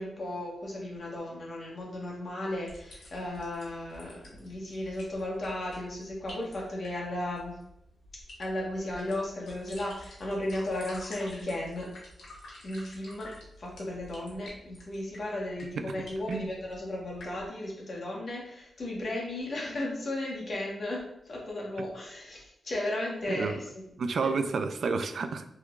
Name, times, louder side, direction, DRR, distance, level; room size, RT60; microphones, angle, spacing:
voice 1, 0.0-7.6 8.4-11.9 12.6-13.3 13.6-23.8 24.2-24.3, left 1 dB, 50° left, -3 dB, 1.2 m, -35 dB
sound 1, 2.7-17.5, left 1 dB, 80° left, 1.1 m, -50 dB
voice 2, 23.3-23.6 24.0-25.5, right 4 dB, 70° right, 9 dB, 0.3 m, -30 dB
3.5 x 3.0 x 2.3 m, 0.77 s
cardioid pair, 80°, 0 cm